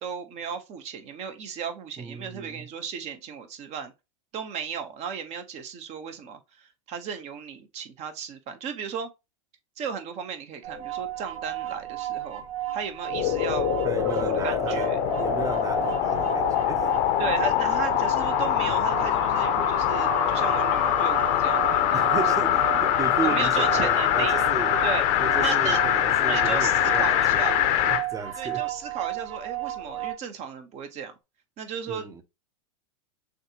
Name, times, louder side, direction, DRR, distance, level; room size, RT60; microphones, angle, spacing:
voice 1, 0.0-3.9 4.3-9.1 9.8-12.5 12.7-13.7 14.2-15.0 17.2-22.2 22.5-22.9 23.2-24.4 24.8-25.1 25.4-25.8 26.3-27.6 28.4-31.1 31.6-32.2, right 7 dB, 40° right, 1.1 m, -35 dB
voice 2, 2.0-2.7 13.8-14.9 15.2-16.9 21.9-24.8 25.2-28.6 31.9-32.2, right 4 dB, 20° right, 0.9 m, -34 dB
sound 1, 10.6-30.1, right 14 dB, 70° right, 1.7 m, -34 dB
sound 2, 13.1-28.1 28.5-28.6, left 11 dB, 50° left, 0.8 m, -23 dB
sound 3, 19.9-25.7, equal, 5° left, 0.5 m, -40 dB
6.4 x 2.5 x 2.9 m
hypercardioid pair, 105°, 17 cm